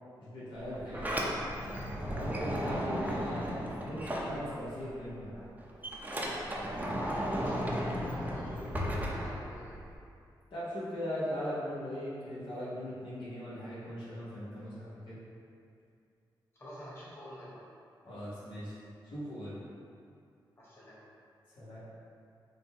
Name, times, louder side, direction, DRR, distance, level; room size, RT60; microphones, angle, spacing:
voice 1, 0.2-1.2 2.0-5.5 10.5-15.2 18.0-18.7 19.0-19.6 21.6-21.8, equal, 75° left, -10 dB, 1.1 m, -39 dB
Sliding door, 0.6-4.9 5.2-9.9, equal, 20° right, 0.6 m, -35 dB
voice 2, 6.9-9.8 16.6-17.6 20.6-21.0, equal, 30° left, -9 dB, 1.4 m, -47 dB
3.9 x 2.2 x 4.3 m, 2.5 s
cardioid pair, 70°, 9 cm